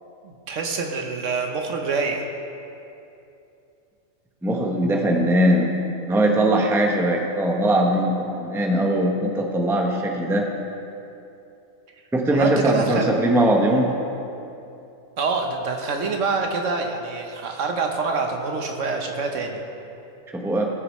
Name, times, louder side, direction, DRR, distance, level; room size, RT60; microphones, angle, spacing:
voice 1, 0.2-2.2 6.4-6.5 12.3-13.1 15.2-19.6, right 4 dB, 70° right, 3 dB, 1.2 m, -26 dB
voice 2, 4.4-5.7 6.1-10.4 12.1-13.9 20.3-20.7, right 1 dB, ahead, 1 dB, 0.7 m, -20 dB
18.5 x 6.7 x 3.1 m, 2.8 s
omnidirectional pair, 1.4 m